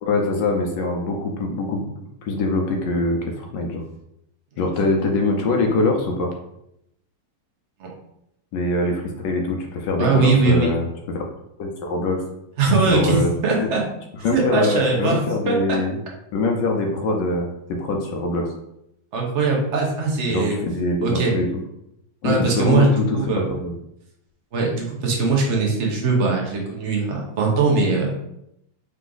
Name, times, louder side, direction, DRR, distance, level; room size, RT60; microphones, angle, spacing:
voice 1, 0.0-1.9 2.2-3.8 4.6-6.3 8.5-11.2 11.6-12.2 12.8-13.3 13.6-13.7 14.2-15.9 16.3-18.5 20.3-21.5 22.2-23.8, left 2 dB, 70° left, 2 dB, 1.1 m, -23 dB
voice 2, 10.0-10.7 12.6-13.8 14.3-15.2 15.5-15.8 19.1-20.6 21.0-21.3 22.2-23.4 24.5-28.1, right 3 dB, 45° right, -1 dB, 0.9 m, -20 dB
3.9 x 3.2 x 3.8 m, 0.81 s
omnidirectional pair, 2.4 m